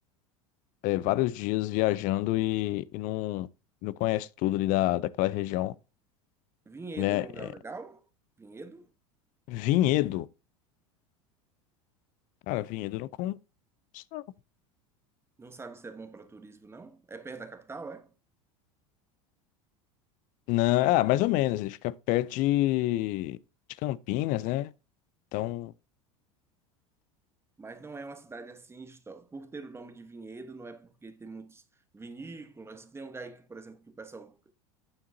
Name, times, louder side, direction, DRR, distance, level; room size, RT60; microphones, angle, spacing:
voice 1, 0.8-3.5 3.8-5.7 7.0-7.5 9.5-10.3 12.5-13.4 13.9-14.2 20.5-23.4 23.8-24.7 25.3-25.7, left 16 dB, 55° left, 0.5 m, -27 dB
voice 2, 6.7-8.1 8.4-8.9 15.4-18.1 27.6-31.6 31.9-34.5, right 3 dB, 15° right, 1.1 m, -44 dB
8.8 x 6.9 x 2.7 m
hypercardioid pair, 85°, 17 cm